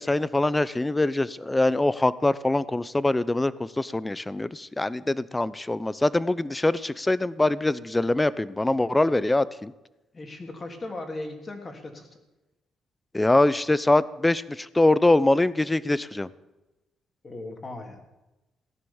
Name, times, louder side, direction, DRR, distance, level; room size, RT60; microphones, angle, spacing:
voice 1, 0.0-9.7 13.1-16.3, left 2 dB, 15° left, 18 dB, 0.7 m, -23 dB
voice 2, 10.1-12.1 17.2-18.0, left 2 dB, 30° left, 4 dB, 3.1 m, -37 dB
16.5 x 10.5 x 7.2 m, 1.0 s
cardioid pair, 90°, 0 cm